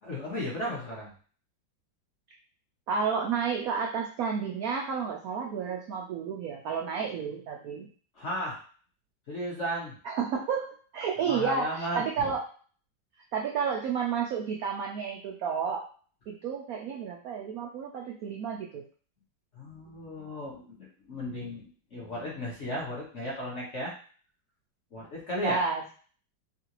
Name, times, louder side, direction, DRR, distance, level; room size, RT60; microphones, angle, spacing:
voice 1, 0.0-1.1 8.2-8.6 9.3-10.0 11.2-12.3 19.5-23.9 24.9-25.6, equal, 45° left, -4 dB, 1.1 m, -35 dB
voice 2, 2.9-7.9 10.0-12.4 13.3-15.9 16.3-18.8 25.4-25.8, right 6 dB, 85° right, 0 dB, 0.7 m, -31 dB
3.7 x 2.5 x 2.9 m, 0.42 s
omnidirectional pair, 2.1 m